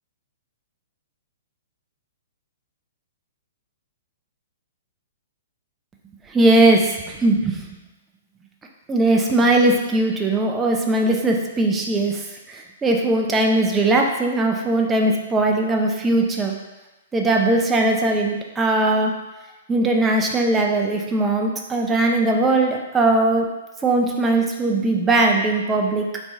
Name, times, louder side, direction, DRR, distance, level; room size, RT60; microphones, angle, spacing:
voice 1, 6.3-7.7 8.9-12.2 12.5-16.6 17.1-19.1 19.7-23.5 23.8-26.1, right 2 dB, 15° right, 1 dB, 0.5 m, -19 dB
4.0 x 3.0 x 3.5 m, 1.1 s
hypercardioid pair, 140°, 0 cm